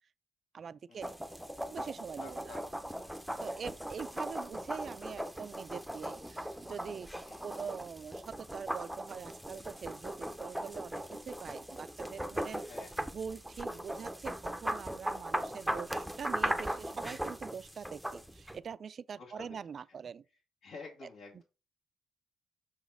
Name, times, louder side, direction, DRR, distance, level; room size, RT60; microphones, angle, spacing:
voice 1, 0.5-1.2 1.7-2.6 3.4-7.1 7.4-12.7 13.0-20.2 21.0-21.1 21.3-21.4, right 6 dB, 50° right, 0.3 m, -44 dB
sound 1, 1.0-18.6, right 1 dB, 5° right, 0.6 m, -39 dB
voice 2, 2.2-2.7 7.3-7.5 12.6-13.1 19.2-19.5 19.9-20.0 20.6-21.4, left 4 dB, 75° left, 1.8 m, -49 dB
6.2 x 4.0 x 4.7 m
cardioid pair, 90°, 0 cm